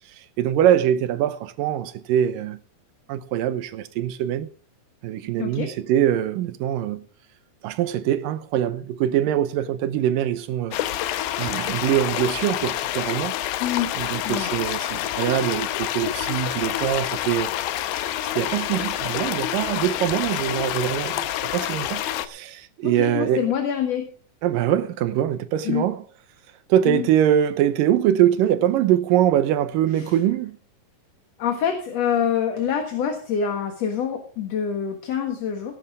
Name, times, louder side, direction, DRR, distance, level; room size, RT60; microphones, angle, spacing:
voice 1, 0.4-2.6 3.1-4.5 5.0-7.1 7.6-10.8 11.4-13.4 14.0-17.5 18.4-21.2 21.5-23.4 24.4-26.0 26.7-30.6, right 11 dB, 80° right, 2.5 m, -23 dB
voice 2, 5.4-5.7 13.6-13.9 14.3-14.5 22.8-24.1 25.6-25.9 26.9-27.1 29.9-30.2 31.4-35.8, left 8 dB, 55° left, 2.3 m, -26 dB
sound 1, 10.7-22.3, left 13 dB, 85° left, 2.6 m, -27 dB
17.5 x 10.5 x 3.6 m
omnidirectional pair, 4.1 m